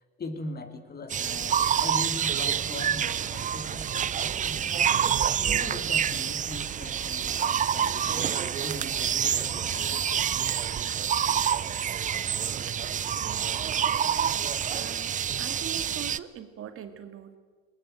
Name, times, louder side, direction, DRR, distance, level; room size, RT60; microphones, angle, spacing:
voice 1, 0.2-4.6 5.5-10.3, left 2 dB, 30° left, 8 dB, 2.8 m, -40 dB
sound 1, 1.1-16.2, right 9 dB, 25° right, 0.6 m, -27 dB
voice 2, 13.1-14.1 14.7-17.4, right 9 dB, 45° right, 9 dB, 2.0 m, -43 dB
20.5 x 19.5 x 9.0 m, 1.5 s
hypercardioid pair, 80°, 31 cm